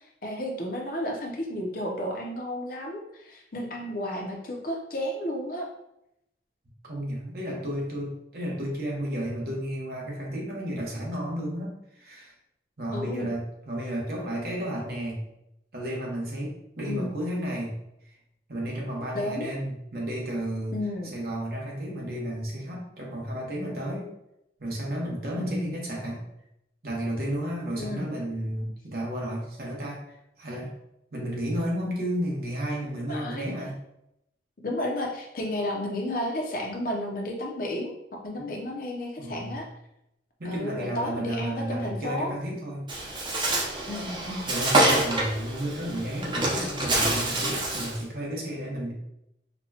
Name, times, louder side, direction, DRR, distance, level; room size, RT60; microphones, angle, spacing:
voice 1, 0.2-5.7 12.9-13.3 16.9-17.1 19.1-19.5 20.7-21.1 25.4-25.7 27.8-28.2 28.6-28.7 33.1-33.5 34.6-39.6 40.4-42.3 43.9-44.5, left 1 dB, 50° left, 1 dB, 0.6 m, -32 dB
voice 2, 6.8-12.3 12.8-15.2 15.7-17.8 18.0-18.2 18.5-20.8 21.1-24.1 24.6-26.2 26.8-30.7 31.1-33.8 38.4-38.6 39.2-39.6 40.4-42.9 44.4-48.9, equal, 55° right, -3 dB, 1.0 m, -32 dB
Bird, 42.9-48.0, right 1 dB, 25° right, 0.6 m, -26 dB
4.2 x 2.2 x 2.8 m, 0.82 s
head